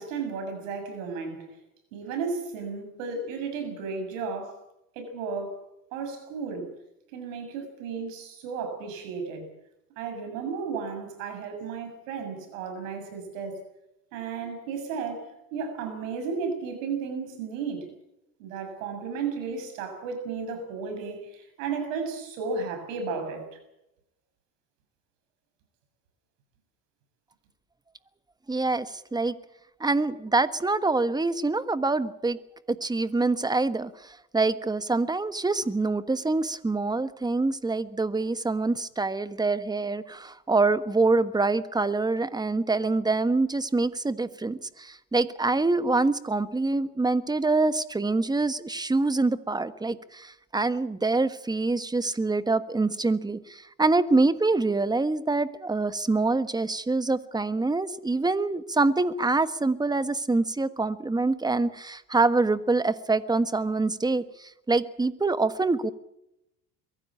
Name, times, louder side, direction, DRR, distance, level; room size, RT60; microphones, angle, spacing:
voice 1, 0.0-1.4 1.9-4.5 5.0-5.6 5.9-6.7 7.1-9.5 10.0-13.6 14.1-17.9 18.4-23.4, right 5 dB, 90° right, 7.2 m, -34 dB
voice 2, 28.5-29.4 29.8-32.4 32.7-65.9, right 3 dB, 10° right, 1.4 m, -25 dB
23.0 x 15.5 x 8.5 m
supercardioid pair, 105°, 38 cm